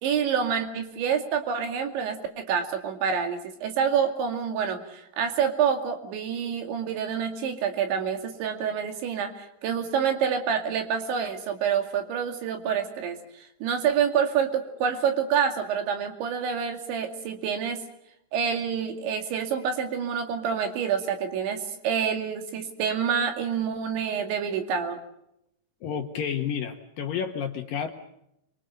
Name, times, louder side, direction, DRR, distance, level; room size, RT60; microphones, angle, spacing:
voice 1, 0.0-13.2 13.6-17.8 18.3-25.0, right 7 dB, 75° right, 5 dB, 4.6 m, -27 dB
voice 2, 25.8-27.9, left 7 dB, 65° left, 4 dB, 2.5 m, -30 dB
27.5 x 24.0 x 6.8 m, 0.79 s
omnidirectional pair, 5.3 m